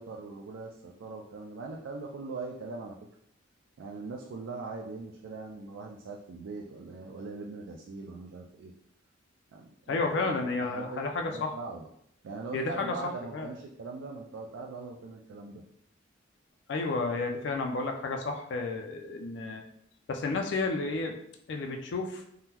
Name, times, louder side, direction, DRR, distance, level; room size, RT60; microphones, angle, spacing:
voice 1, 0.0-3.0 3.8-8.7 9.5-11.9 12.2-15.6, right 3 dB, 80° right, 0 dB, 0.3 m, -41 dB
voice 2, 9.9-11.5 12.5-13.0 13.3-13.5 16.7-19.6 20.1-21.2 21.5-22.2, left 3 dB, 65° left, 3 dB, 0.4 m, -31 dB
3.6 x 2.0 x 2.8 m, 0.72 s
head